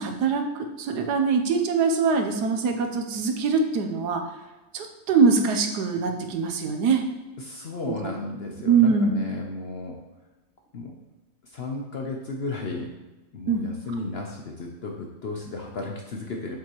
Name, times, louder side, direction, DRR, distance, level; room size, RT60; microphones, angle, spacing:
voice 1, 0.0-4.2 4.7-7.0 7.8-7.9 8.6-9.1 13.5-13.6, right 5 dB, 80° right, 5 dB, 1.4 m, -23 dB
voice 2, 7.4-10.0 10.7-10.9 11.4-12.9 13.3-16.6, left 2 dB, 55° left, 1 dB, 0.7 m, -34 dB
7.4 x 5.6 x 3.0 m, 1.1 s
omnidirectional pair, 1.7 m